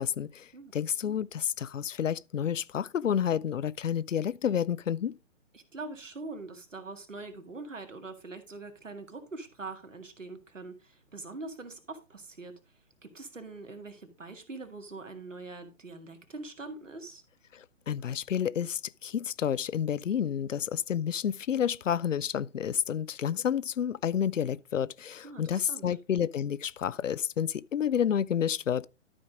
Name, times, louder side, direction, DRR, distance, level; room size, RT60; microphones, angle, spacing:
voice 1, 0.0-5.1 17.5-28.9, left 9 dB, 80° left, 0.5 m, -30 dB
voice 2, 5.5-12.5 13.0-17.2 25.2-25.9, right 3 dB, 80° right, 2.0 m, -43 dB
12.5 x 5.1 x 3.7 m
figure-of-eight pair, 130°, 37 cm